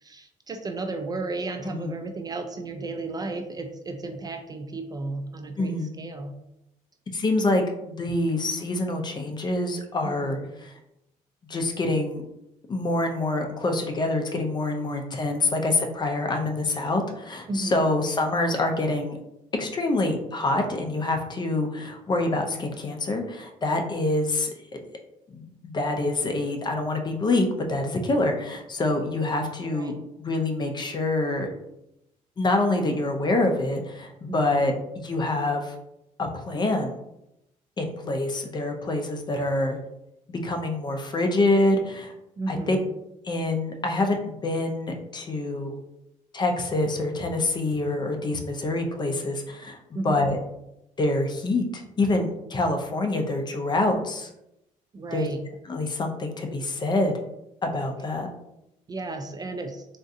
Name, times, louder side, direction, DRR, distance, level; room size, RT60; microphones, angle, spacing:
voice 1, 0.0-6.3 10.0-10.5 17.5-17.8 29.7-29.9 34.3-34.6 42.4-42.8 49.9-50.2 54.9-55.4 58.9-59.9, right 3 dB, 25° right, 5 dB, 0.3 m, -33 dB
voice 2, 5.6-5.9 7.1-10.7 11.5-12.2 12.7-19.2 19.5-24.5 25.3-31.5 32.4-34.7 35.0-35.7 36.2-36.9 37.8-39.8 40.3-42.1 42.5-42.8 43.2-45.8 46.3-49.8 50.0-50.4 51.0-54.3 55.1-55.3 55.7-57.1 57.6-58.3, left 2 dB, 30° left, 4 dB, 0.5 m, -26 dB
3.6 x 2.5 x 2.7 m, 0.84 s
cardioid pair, 110°, 15 cm